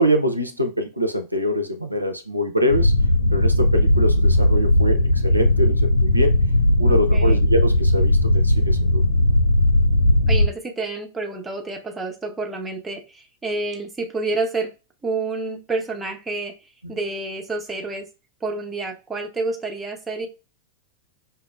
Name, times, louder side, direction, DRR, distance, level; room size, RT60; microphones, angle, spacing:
voice 1, 0.0-2.9 3.3-6.3 6.8-9.0 16.8-16.9, equal, 85° right, 0.4 m, -24 dB
sound 1, 2.7-10.5, left 1 dB, 80° left, 0.5 m, -17 dB
voice 2, 6.9-7.4 10.3-14.7 15.0-16.5 16.9-18.0 18.4-20.3, right 3 dB, 10° right, 0.7 m, -29 dB
5.4 x 2.1 x 2.2 m
figure-of-eight pair, 90°, 0 cm